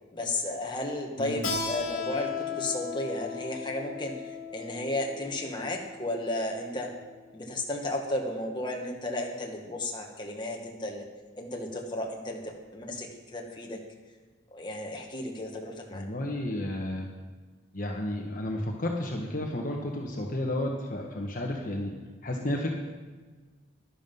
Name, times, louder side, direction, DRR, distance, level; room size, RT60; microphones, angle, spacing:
voice 1, 0.1-6.9 7.3-11.0 11.3-13.8 14.5-16.1, left 1 dB, 25° left, 0 dB, 1.6 m, -34 dB
voice 2, 1.2-1.5 15.9-17.1 17.7-21.9 22.2-22.7, left 1 dB, 45° left, 0 dB, 1.2 m, -32 dB
Keyboard (musical), 1.4-6.7, left 6 dB, 75° left, 2.1 m, -36 dB
11.5 x 11.5 x 5.4 m, 1.4 s
head